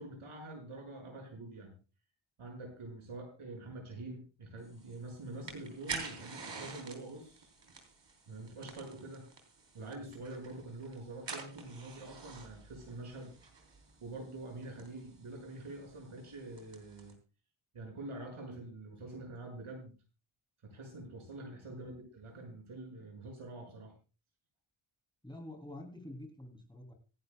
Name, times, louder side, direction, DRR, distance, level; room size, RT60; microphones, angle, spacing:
voice 1, 0.0-1.7 2.4-7.5 8.3-9.3 9.7-13.3 14.0-17.1 17.7-19.9 20.6-23.9, right 2 dB, 80° right, 2 dB, 6.3 m, -46 dB
sound 1, 4.6-17.1, right 4 dB, 60° right, 3.7 m, -49 dB
voice 2, 25.2-26.9, left 1 dB, 10° left, 2 dB, 3.0 m, -47 dB
26.0 x 10.5 x 2.3 m, 0.33 s
wide cardioid pair, 135°, 49 cm